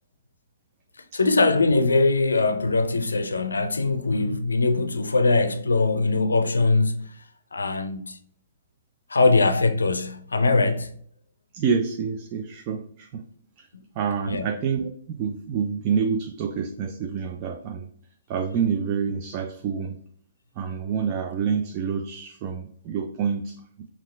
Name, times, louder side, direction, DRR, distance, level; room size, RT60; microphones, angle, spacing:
voice 1, 1.1-7.1 7.5-8.2 9.1-10.9 14.3-14.5, left 3 dB, 80° left, 0.4 m, -21 dB
voice 2, 11.5-13.2 13.6-13.7 14.0-17.9 18.3-20.0 20.6-23.9, right 6 dB, 35° right, 0.4 m, -27 dB
5.5 x 2.4 x 3.2 m
figure-of-eight pair, 125°, 0 cm